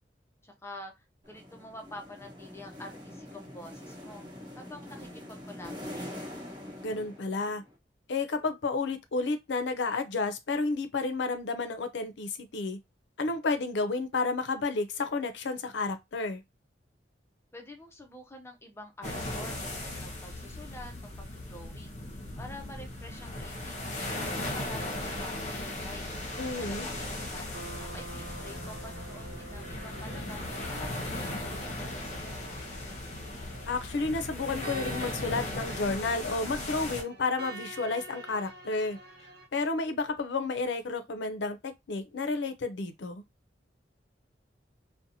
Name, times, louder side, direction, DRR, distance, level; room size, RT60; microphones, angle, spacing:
voice 1, 0.4-4.2 4.5-6.1 17.5-22.0 22.4-26.0 26.6-32.9, left 1 dB, 15° left, 0.5 m, -48 dB
sound 1, 1.2-7.7, left 1 dB, 25° right, 1.1 m, -44 dB
voice 2, 6.8-7.6 8.1-12.8 13.2-16.4 26.4-26.9 33.7-39.0 39.5-43.2, left 3 dB, 75° left, 0.5 m, -31 dB
sound 2, 19.0-37.0, left 1 dB, 40° left, 0.8 m, -37 dB
sound 3, 26.2-39.5, right 2 dB, 65° right, 0.7 m, -47 dB
2.7 x 2.1 x 2.7 m
head